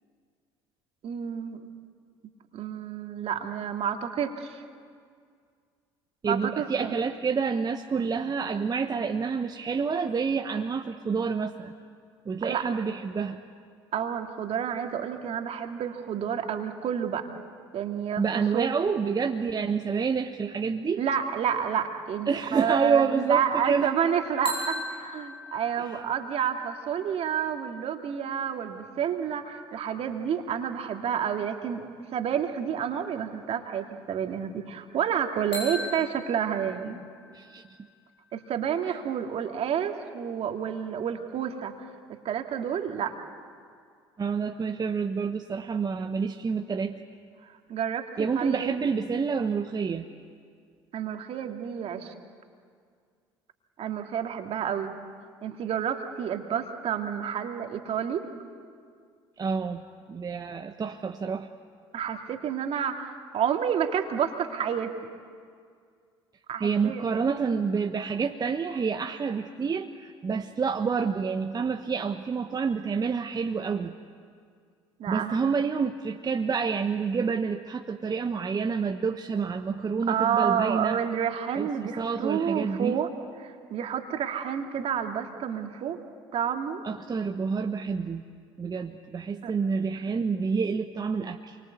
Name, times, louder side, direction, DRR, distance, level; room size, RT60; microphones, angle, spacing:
voice 1, 1.0-1.6 2.5-4.6 6.2-7.0 12.4-12.7 13.9-17.3 17.7-18.8 21.0-31.8 32.1-37.0 38.3-43.2 47.4-48.7 50.9-52.1 53.8-54.9 55.4-58.3 61.9-64.9 66.5-67.0 75.0-75.5 80.1-83.1 83.4-86.0 86.3-86.8 89.4-89.5, right 8 dB, 50° right, 4 dB, 2.5 m, -29 dB
voice 2, 6.2-11.7 12.2-13.4 18.2-21.0 22.3-23.9 25.8-26.0 37.3-37.6 38.8-38.9 44.2-47.0 48.2-50.0 59.4-61.5 66.6-73.9 75.1-81.0 81.5-83.0 86.8-88.2 88.6-91.6, right 5 dB, 30° right, 5 dB, 1.3 m, -28 dB
sound 1, 24.4-28.3 35.5-39.4, left 2 dB, 85° left, 7.0 m, -41 dB
28.5 x 23.5 x 8.3 m, 2.1 s
hypercardioid pair, 60°, 13 cm